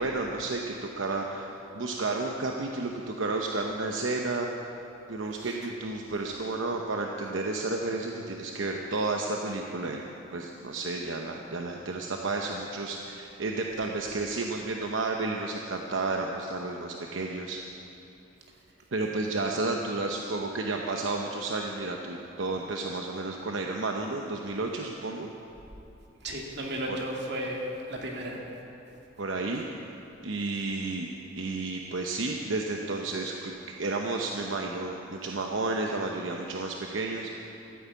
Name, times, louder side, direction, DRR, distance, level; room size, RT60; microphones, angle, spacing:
voice 1, 0.0-4.5 5.1-10.0 10.3-17.6 18.9-25.3 26.9-27.0 29.2-29.6 30.2-31.1 31.4-37.3, right 3 dB, 80° right, 1 dB, 0.9 m, -32 dB
voice 2, 26.2-27.6 27.9-28.4, right 1 dB, 60° right, -1 dB, 2.3 m, -34 dB
14.0 x 9.0 x 8.4 m, 2.9 s
head